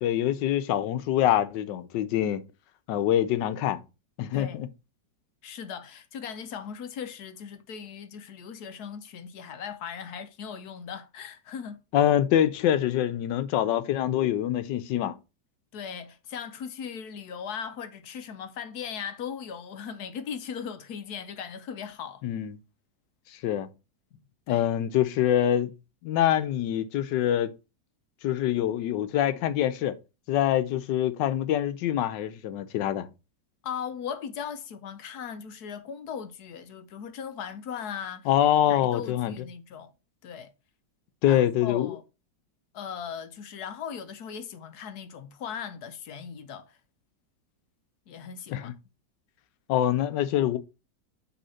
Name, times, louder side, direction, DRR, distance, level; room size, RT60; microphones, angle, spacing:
voice 1, 0.0-2.4 2.9-3.8 4.2-4.7 11.9-15.2 22.2-22.6 23.4-23.7 24.5-25.7 26.0-27.5 28.2-30.0 30.3-33.1 38.3-39.3 41.2-42.0 48.5-48.7 49.7-50.6, left 11 dB, 90° left, 1.3 m, -25 dB
voice 2, 4.3-4.6 5.4-11.8 15.7-22.2 24.5-24.7 33.6-38.3 38.7-39.9 40.2-40.5 41.2-42.0 42.7-46.8 48.1-48.7, left 7 dB, 70° left, 1.2 m, -38 dB
5.6 x 3.2 x 5.6 m
omnidirectional pair, 1.9 m